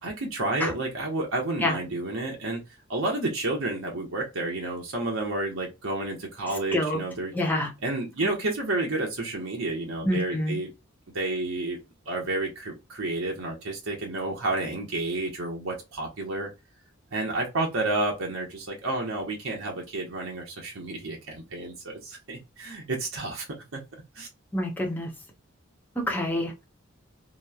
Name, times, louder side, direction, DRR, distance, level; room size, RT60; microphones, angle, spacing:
voice 1, 0.0-2.6 2.9-7.3 7.8-10.7 11.1-11.8 12.1-16.5 17.1-23.5 23.7-23.8 24.1-24.3, right 2 dB, 80° right, 0.8 m, -30 dB
voice 2, 6.7-7.0 7.3-7.7 10.0-10.5 24.5-25.1 26.0-26.6, left 1 dB, 10° left, 0.7 m, -27 dB
2.9 x 2.0 x 2.3 m
head